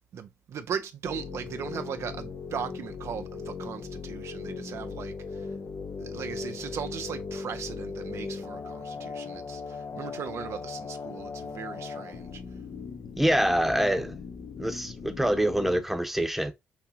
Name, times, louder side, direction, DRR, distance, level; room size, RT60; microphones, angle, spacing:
voice 1, 0.1-5.6 6.0-12.4, right 7 dB, 65° right, 0.5 m, -38 dB
sound 1, 1.0-15.8, left 5 dB, 55° left, 0.7 m, -38 dB
voice 2, 13.2-14.2 14.6-16.5, right 1 dB, 5° right, 0.9 m, -25 dB
6.0 x 2.7 x 2.7 m
hypercardioid pair, 40°, 5 cm